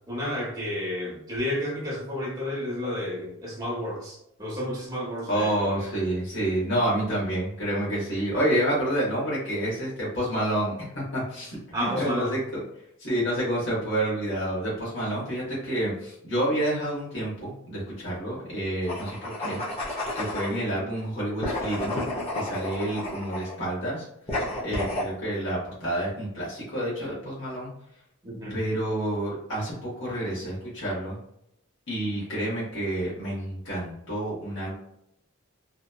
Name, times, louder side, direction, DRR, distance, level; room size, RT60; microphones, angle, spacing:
voice 1, 0.1-5.7 11.7-12.4 28.2-28.6, left 1 dB, 20° right, -5 dB, 0.8 m, -31 dB
voice 2, 5.3-12.4 13.0-19.6 20.1-22.0 22.3-24.1 24.6-27.7 28.5-31.2 31.9-34.7, right 1 dB, 55° left, -7 dB, 1.1 m, -29 dB
sound 1, 18.8-20.6 21.4-23.6 24.3-25.1, left 1 dB, 30° left, 0.5 m, -31 dB
2.8 x 2.1 x 2.2 m, 0.77 s
head